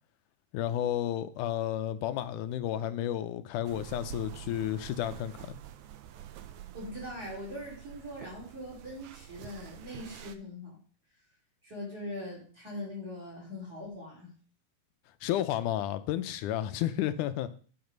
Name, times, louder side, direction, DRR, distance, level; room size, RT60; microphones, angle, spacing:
voice 1, 0.5-5.6 15.2-17.5, left 11 dB, 85° left, 12 dB, 2.2 m, -32 dB
sound 1, 3.6-10.4, right 10 dB, 75° right, 2.1 m, -47 dB
voice 2, 6.7-10.8 11.6-14.3, left 1 dB, 30° right, -4 dB, 5.9 m, -41 dB
10.5 x 7.9 x 5.3 m, 0.43 s
omnidirectional pair, 3.6 m